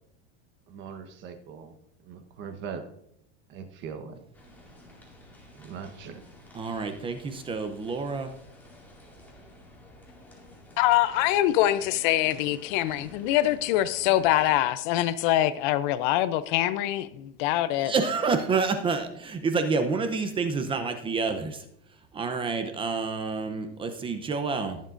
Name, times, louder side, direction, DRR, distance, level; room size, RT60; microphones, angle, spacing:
voice 1, 0.7-1.8 2.0-2.8 3.5-4.2 5.5-6.2, right 6 dB, 35° right, 1.2 m, -40 dB
sound 1, 4.3-14.5, left 1 dB, 5° left, 2.2 m, -52 dB
voice 2, 6.5-8.3 17.8-21.6 22.1-24.8, right 4 dB, 15° right, 0.7 m, -28 dB
voice 3, 10.8-17.9, left 14 dB, 50° left, 0.5 m, -24 dB
19.5 x 7.3 x 2.6 m
supercardioid pair, 150°, 31 cm